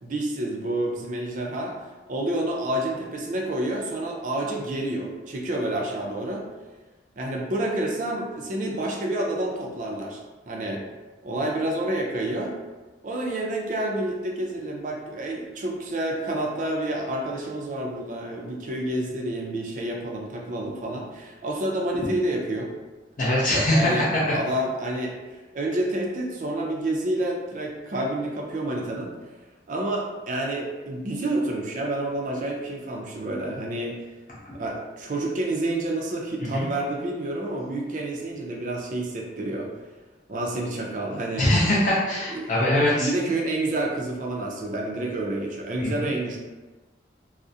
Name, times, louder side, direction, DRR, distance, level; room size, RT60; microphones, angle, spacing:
voice 1, 0.0-1.8 2.1-6.4 7.2-10.8 11.2-12.6 13.0-22.7 23.5-25.1 25.5-29.1 29.7-34.0 34.6-39.7 40.3-41.5 42.3-42.5 43.0-46.4, right 1 dB, 45° right, -1 dB, 0.4 m, -29 dB
voice 2, 23.2-24.2 36.5-36.7 41.4-43.1 45.8-46.1, left 1 dB, 45° left, -7 dB, 0.4 m, -22 dB
2.4 x 2.0 x 2.6 m, 1.2 s
head